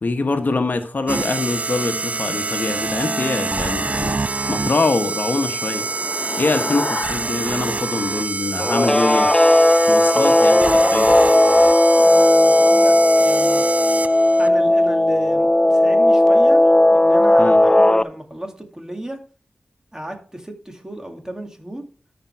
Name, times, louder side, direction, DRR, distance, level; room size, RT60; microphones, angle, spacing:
voice 1, 0.0-4.2 4.5-5.9 6.4-9.3 9.9-11.1 17.4-17.6, left 3 dB, 60° left, 7 dB, 1.1 m, -24 dB
sound 1, 1.1-14.5, right 3 dB, 40° right, 0.4 m, -26 dB
sound 2, 4.7-9.0, left 2 dB, 35° left, 2.4 m, -33 dB
Guitar, 8.6-18.0, left 1 dB, 15° left, 0.5 m, -15 dB
voice 2, 12.0-13.6 14.4-19.2 19.9-21.8, right 1 dB, 15° right, 3 dB, 2.3 m, -33 dB
13.0 x 5.3 x 4.6 m, 0.40 s
wide cardioid pair, 60°, 4 cm